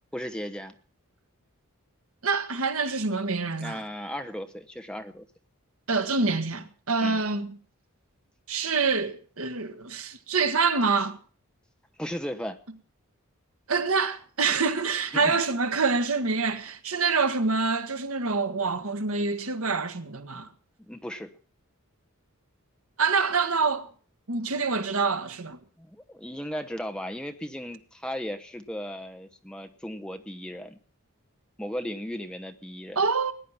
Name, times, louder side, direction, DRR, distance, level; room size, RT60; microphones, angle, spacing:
voice 1, 0.1-0.7 3.6-5.3 7.0-7.2 12.0-12.6 15.1-15.4 20.9-21.3 25.8-30.8 31.6-33.0, equal, 5° left, 0.9 m, -36 dB
voice 2, 2.2-3.8 5.9-7.5 8.5-11.2 13.7-20.5 23.0-23.9 24.3-25.6 32.9-33.3, right 4 dB, 75° right, 1.4 m, -26 dB
19.5 x 10.5 x 5.7 m
head